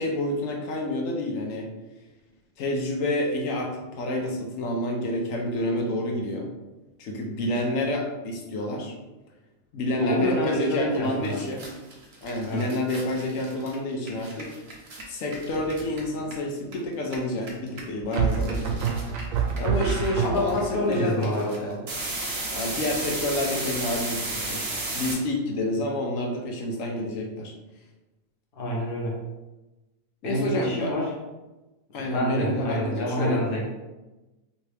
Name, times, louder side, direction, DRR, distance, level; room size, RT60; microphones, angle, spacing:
voice 1, 0.0-1.7 2.6-6.5 7.0-8.9 9.7-11.7 12.2-14.5 15.1-18.8 19.6-21.8 22.5-24.6 24.9-27.5 30.2-30.9 31.9-33.4, left 1 dB, 75° left, 1 dB, 1.1 m, -29 dB
voice 2, 10.0-11.5 12.4-12.7 20.2-21.5 28.5-29.2 30.2-31.1 31.9-33.7, equal, 45° left, -3 dB, 0.9 m, -27 dB
sound 1, 10.9-11.0 11.2-16.7 17.0-25.1, right 2 dB, 50° right, 1.1 m, -34 dB
sound 2, 15.5-16.0 18.2-20.8, right 6 dB, 75° right, 0.9 m, -27 dB
3.1 x 2.8 x 3.3 m, 1.1 s
omnidirectional pair, 1.4 m